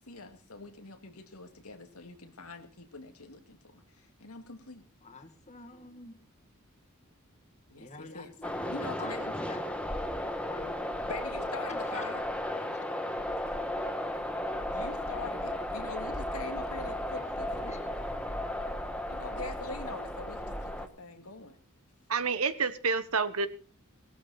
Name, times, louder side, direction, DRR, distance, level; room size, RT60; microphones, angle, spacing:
voice 1, 0.0-4.9 7.7-8.3 8.7-9.3 11.1-12.2 14.7-17.8 19.1-21.6, left 3 dB, 90° left, 6 dB, 2.2 m, -44 dB
voice 2, 5.0-6.2 7.8-9.9 10.4-10.8 11.7-12.2 12.7-12.9 17.2-17.9, left 3 dB, 35° left, 6 dB, 2.1 m, -47 dB
sound 1, 8.4-20.9, left 1 dB, 5° left, 1.4 m, -35 dB
voice 3, 22.1-23.5, right 5 dB, 75° right, 13 dB, 1.3 m, -28 dB
18.0 x 13.5 x 4.1 m, 0.37 s
head